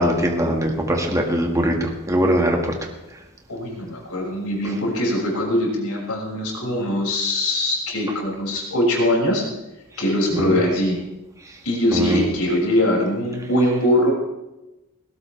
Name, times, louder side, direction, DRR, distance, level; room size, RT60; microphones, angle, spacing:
voice 1, 0.0-2.7 10.3-10.5 11.9-12.2, equal, 15° right, 1 dB, 1.9 m, -21 dB
voice 2, 3.5-9.4 10.0-11.0 11.6-14.1, left 1 dB, 80° left, -2 dB, 6.5 m, -22 dB
20.0 x 17.0 x 3.5 m, 1.0 s
head